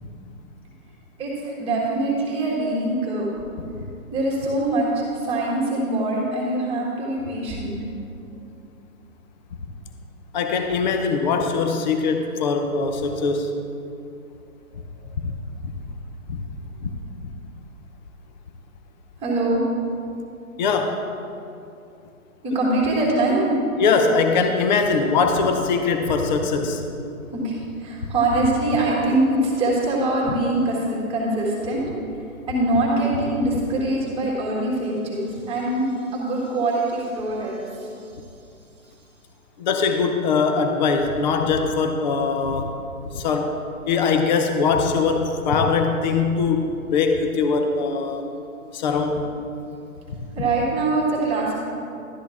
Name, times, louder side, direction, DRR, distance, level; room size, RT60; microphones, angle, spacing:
voice 1, 1.2-3.3 4.1-7.7 19.2-19.6 22.4-23.6 27.3-31.8 32.5-37.9 50.4-51.5, right 2 dB, 15° right, -4 dB, 1.8 m, -23 dB
voice 2, 10.3-13.5 15.2-15.3 15.6-15.7 16.3-16.4 16.8-16.9 17.2-17.3 20.6-21.1 23.8-26.8 39.6-42.8 43.1-43.6 43.9-48.3 48.7-49.3 50.1-50.2, left 4 dB, 30° left, 5 dB, 0.7 m, -22 dB
12.0 x 10.0 x 3.5 m, 2.6 s
hypercardioid pair, 140°, 43 cm